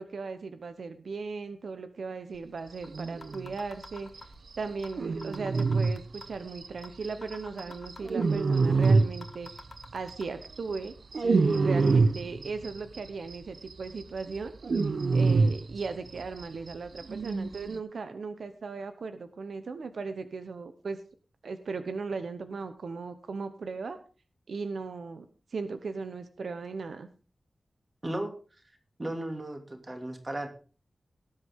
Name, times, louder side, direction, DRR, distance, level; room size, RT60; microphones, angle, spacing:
voice 1, 0.0-4.3 4.6-9.5 9.9-10.9 11.2-14.5 15.1-21.0 21.4-24.0 24.5-25.3 25.5-27.1, right 4 dB, 90° right, 10 dB, 1.0 m, -37 dB
sound 1, 2.3-2.4 2.8-2.9 3.2-4.4 4.8-5.0 5.2-6.4 6.8-6.9 7.2-8.4 8.8-8.9 9.2-10.2, left 4 dB, 55° left, 1.5 m, -46 dB
sound 2, 2.9-3.5 3.9-4.0 4.2-4.3 4.5-4.6 4.8-7.3 7.6-9.8 10.1-13.0 13.3-13.4 13.7-16.4 16.7-16.8 17.0-17.8, right 4 dB, 65° right, 0.8 m, -26 dB
voice 2, 29.0-30.5, right 1 dB, 25° right, 4 dB, 2.6 m, -35 dB
18.5 x 8.2 x 3.7 m, 0.36 s
wide cardioid pair, 125°, 0 cm